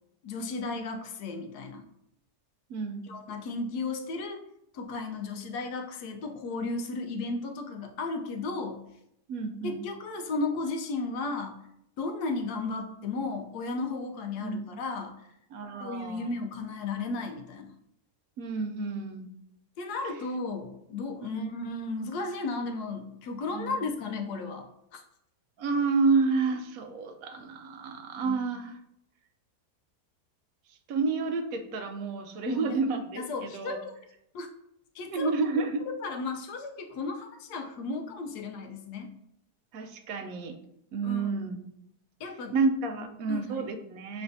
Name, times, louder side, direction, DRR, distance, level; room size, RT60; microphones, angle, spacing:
voice 1, 0.2-1.8 3.0-4.4 4.7-8.8 9.6-11.6 12.0-15.1 15.8-17.7 19.8-25.0 28.2-28.4 32.5-32.8 33.2-33.9 34.3-34.5 34.9-35.3 36.0-39.1 41.0-41.3 42.2-42.5 43.0-43.6, left 3 dB, 75° left, 5 dB, 1.2 m, -34 dB
voice 2, 2.7-3.1 9.3-9.8 14.4-14.7 15.5-16.3 18.4-19.3 21.2-21.5 23.5-23.8 25.6-28.8 30.9-33.8 35.1-35.8 39.7-40.6 40.9-41.6 42.5-44.2, right 4 dB, 65° right, 6 dB, 1.0 m, -30 dB
6.1 x 3.3 x 2.6 m, 0.77 s
omnidirectional pair, 1.7 m